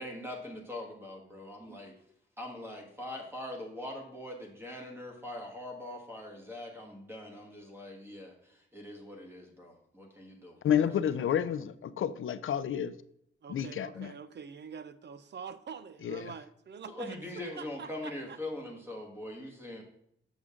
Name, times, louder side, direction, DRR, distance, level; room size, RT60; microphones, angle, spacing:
voice 1, 0.0-1.9 2.4-10.9 16.9-19.8, left 1 dB, 10° right, 1.4 m, -42 dB
voice 2, 10.6-12.9 13.5-14.1 16.0-16.3, left 9 dB, 70° left, 0.4 m, -30 dB
voice 3, 13.4-18.4, right 6 dB, 55° right, 0.5 m, -45 dB
7.1 x 6.4 x 3.7 m
wide cardioid pair, 165°, 21 cm